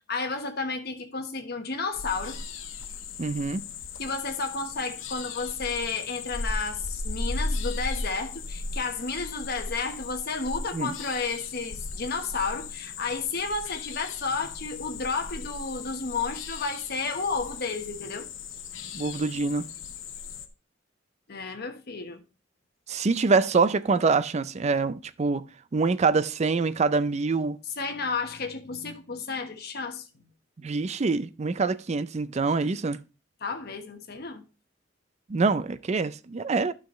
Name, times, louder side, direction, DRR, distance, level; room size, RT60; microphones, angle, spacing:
voice 1, 0.1-2.4 4.0-18.3 21.3-22.2 27.8-30.2 33.4-34.4, left 4 dB, 55° left, 1.2 m, -32 dB
sound 1, 1.9-20.5, left 3 dB, 85° left, 0.9 m, -36 dB
voice 2, 3.2-3.6 10.7-10.9 18.9-19.7 22.9-25.5 25.7-27.6 30.6-33.0 35.3-36.7, right 4 dB, 35° right, 0.4 m, -25 dB
11.5 x 5.9 x 3.1 m
head